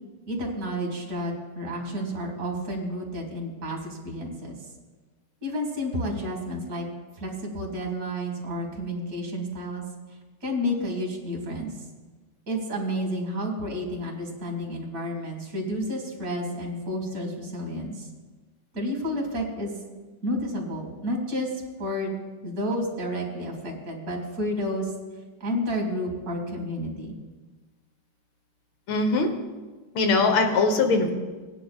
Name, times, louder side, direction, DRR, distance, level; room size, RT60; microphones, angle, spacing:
voice 1, 0.3-4.6 5.4-6.8 7.2-9.8 10.4-11.8 12.5-18.1 18.7-19.7 20.2-21.5 21.8-22.2 22.4-24.9 25.4-27.2, equal, 50° right, 1 dB, 2.5 m, -30 dB
voice 2, 28.9-29.3 30.0-31.1, left 3 dB, 85° left, 5 dB, 1.9 m, -21 dB
18.0 x 9.9 x 2.4 m, 1.3 s
omnidirectional pair, 2.1 m